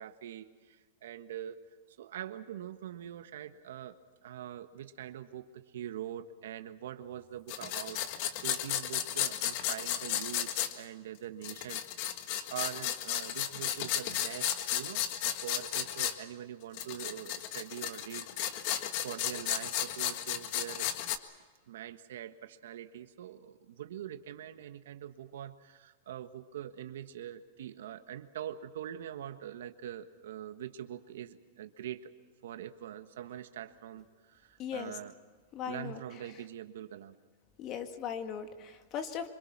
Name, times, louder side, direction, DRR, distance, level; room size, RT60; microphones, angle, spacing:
voice 1, 0.0-1.6 1.9-18.3 19.0-20.9 21.7-32.1 32.4-35.1 35.6-37.2, right 10 dB, 75° right, 9 dB, 1.5 m, -44 dB
sound 1, 7.5-10.7 11.4-16.1 16.7-21.2, left 11 dB, 50° left, 1.6 m, -34 dB
voice 2, 34.6-35.0 35.5-36.0 37.6-39.3, left 8 dB, 35° left, 6 dB, 2.2 m, -38 dB
25.5 x 24.0 x 6.1 m, 1.4 s
hypercardioid pair, 135°, 0 cm